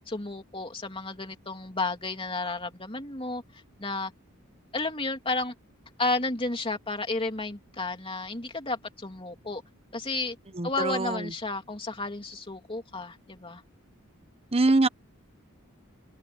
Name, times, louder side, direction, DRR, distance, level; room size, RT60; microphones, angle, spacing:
voice 1, 0.1-3.4 3.8-4.1 4.7-5.5 6.0-9.6 9.9-10.4 10.6-13.6, left 3 dB, 25° left, 3.1 m, -32 dB
voice 2, 10.6-11.2 14.5-14.9, right 2 dB, 30° right, 0.9 m, -23 dB
head